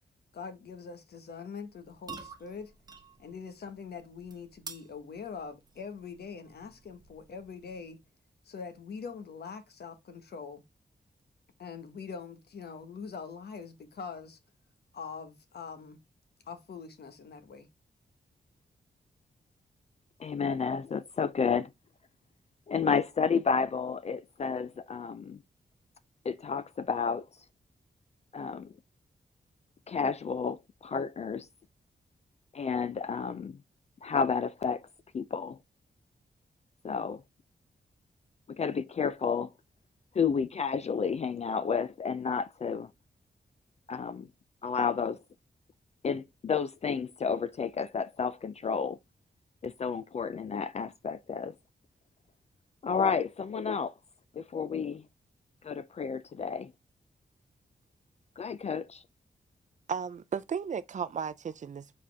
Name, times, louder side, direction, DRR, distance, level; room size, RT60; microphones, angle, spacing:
voice 1, 0.3-2.7 3.2-8.0 8.4-10.6 11.6-14.4 14.9-16.0 16.5-17.7, left 5 dB, 70° left, 1.3 m, -43 dB
sound 1, 1.7-8.1, right 4 dB, 25° right, 1.0 m, -51 dB
voice 2, 20.2-21.7 22.7-25.4 26.2-27.3 28.3-28.7 29.9-31.5 32.5-33.6 34.0-34.8 35.1-35.6 36.8-37.2 38.6-39.5 40.1-42.9 43.9-44.3 44.6-45.2 46.0-49.0 49.6-51.5 52.8-53.9 54.3-55.0 55.6-56.7 58.4-59.0, left 6 dB, 40° left, 0.4 m, -31 dB
voice 3, 59.9-61.9, right 7 dB, 45° right, 0.5 m, -34 dB
7.4 x 4.2 x 3.4 m
wide cardioid pair, 175°, 17 cm